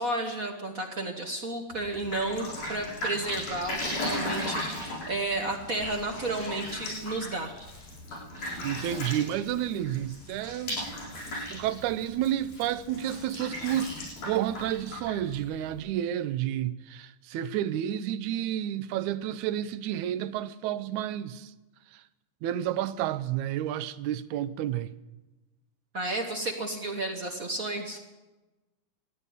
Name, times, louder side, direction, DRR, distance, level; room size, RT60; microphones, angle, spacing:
voice 1, 0.0-7.5 25.9-28.0, right 2 dB, 55° right, 0.9 m, -32 dB
Drip, 1.7-15.8, left 1 dB, 85° left, 8.8 m, -37 dB
voice 2, 8.6-11.2 11.5-14.0 14.2-21.5 21.9-22.0 22.4-24.9, right 11 dB, 80° right, 2.0 m, -30 dB
15.0 x 9.9 x 9.4 m
omnidirectional pair, 3.4 m